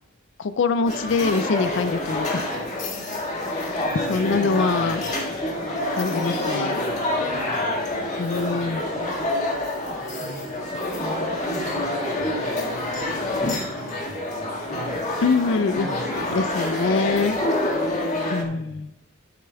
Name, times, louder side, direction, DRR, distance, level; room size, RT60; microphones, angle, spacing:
voice 1, 0.4-2.5 3.4-5.0 5.9-6.8 8.2-8.8 15.2-15.9 16.3-17.4 18.3-18.9, left 4 dB, 55° left, 12 dB, 0.4 m, -24 dB
sound 1, 0.8-18.4, left 1 dB, 35° left, 1.8 m, -27 dB
voice 2, 3.9-4.4 7.3-7.9 8.4-8.9 9.8-10.5 11.0-15.0 15.7-16.4 18.4-18.9, left 1 dB, 25° right, -2 dB, 2.6 m, -40 dB
13.5 x 8.6 x 2.3 m, 0.87 s
head